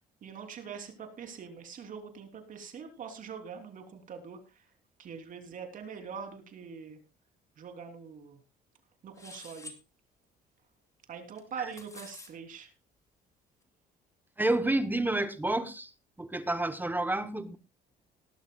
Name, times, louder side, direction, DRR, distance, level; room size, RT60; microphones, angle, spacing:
voice 1, 0.2-4.6 5.0-7.0 7.6-8.4 9.0-9.7 11.1-12.7, right 6 dB, 50° right, 3.4 m, -43 dB
sound 1, 9.2-9.8 11.4-12.3, left 2 dB, 20° left, 2.6 m, -48 dB
voice 2, 14.4-15.9 16.2-17.6, right 2 dB, 10° right, 1.0 m, -29 dB
19.0 x 12.0 x 2.4 m
cardioid pair, 110°, 17 cm